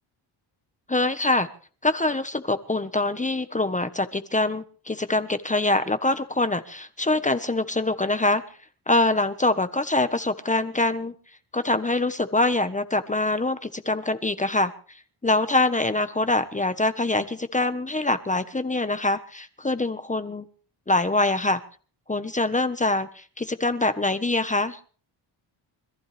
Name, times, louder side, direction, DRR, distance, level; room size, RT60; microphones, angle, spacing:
voice 1, 0.9-1.5 1.8-8.4 8.9-11.1 11.5-14.7 15.2-20.5 20.9-21.6 22.1-24.8, left 2 dB, 15° left, 1.3 m, -24 dB
25.5 x 15.0 x 3.5 m
cardioid pair, 125°, 46 cm